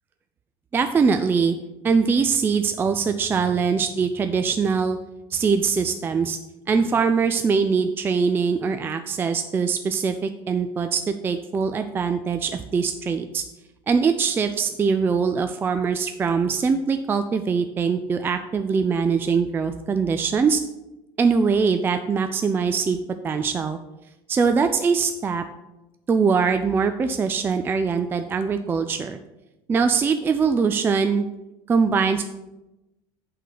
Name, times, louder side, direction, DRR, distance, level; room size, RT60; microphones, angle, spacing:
voice 1, 0.7-1.6 1.8-5.0 5.3-6.4 6.7-13.4 13.9-20.6 21.2-23.0 23.2-23.8 24.3-25.4 26.1-29.2 29.7-31.2 31.7-32.2, right 5 dB, 20° right, 8 dB, 0.3 m, -22 dB
8.3 x 3.8 x 5.8 m, 0.99 s
supercardioid pair, 130°, 11 cm